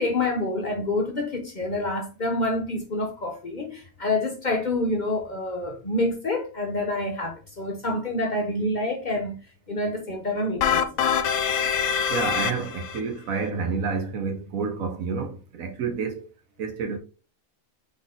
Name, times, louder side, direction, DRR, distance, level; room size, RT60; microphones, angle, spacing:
voice 1, 0.0-9.4 9.7-11.1, left 2 dB, 45° left, 0.7 m, -27 dB
sound 1, 10.6-13.0, left 7 dB, 80° left, 1.0 m, -24 dB
voice 2, 12.1-16.2 16.6-17.0, right 5 dB, 75° right, 1.2 m, -29 dB
3.9 x 3.5 x 3.7 m
omnidirectional pair, 1.4 m